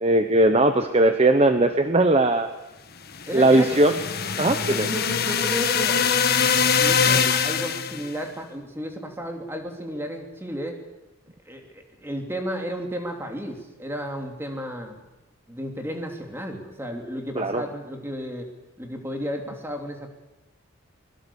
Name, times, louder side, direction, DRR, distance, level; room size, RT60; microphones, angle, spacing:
voice 1, 0.0-2.5 3.3-4.0 4.4-4.9 17.3-17.6, right 2 dB, 30° right, 8 dB, 1.1 m, -19 dB
sound 1, 3.1-8.1, left 6 dB, 45° left, 1.5 m, -23 dB
voice 2, 3.3-3.7 4.7-6.0 6.8-10.8 11.4-15.0 15.5-18.5 18.8-20.1, equal, 10° right, 3 dB, 3.2 m, -33 dB
24.0 x 22.0 x 7.2 m, 1.0 s
head